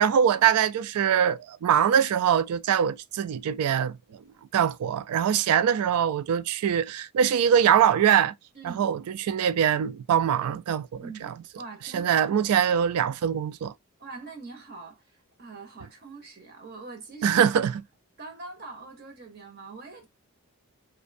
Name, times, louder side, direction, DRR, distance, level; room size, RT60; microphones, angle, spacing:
voice 1, 0.0-4.0 4.5-8.3 8.6-11.3 11.9-13.7 17.2-17.7, right 8 dB, 85° right, 0.3 m, -23 dB
voice 2, 8.5-8.9 11.0-12.4 14.0-17.5 18.2-20.1, right 3 dB, 45° right, 0.7 m, -43 dB
2.5 x 2.1 x 2.4 m
head